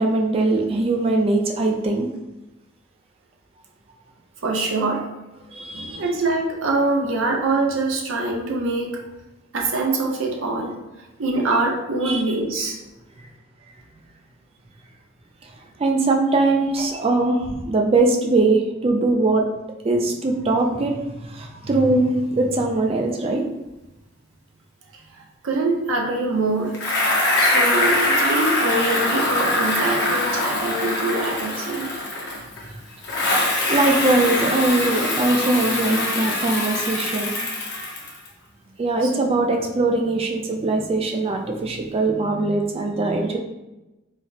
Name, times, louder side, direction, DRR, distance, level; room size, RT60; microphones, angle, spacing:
voice 1, 0.0-2.1 5.5-6.0 11.4-11.5 12.0-12.2 15.8-19.5 19.8-23.5 32.6-32.7 33.7-37.3 38.8-43.4, right 2 dB, 30° right, 2 dB, 0.3 m, -21 dB
voice 2, 4.4-5.0 5.7-9.0 9.5-10.8 11.2-12.8 25.1-26.8 27.4-31.9 39.0-39.1, right 2 dB, 70° right, 0 dB, 0.6 m, -24 dB
Bicycle, 26.7-32.6 33.0-38.3, left 1 dB, 55° left, 0.8 m, -23 dB
4.0 x 2.0 x 2.6 m, 1.0 s
head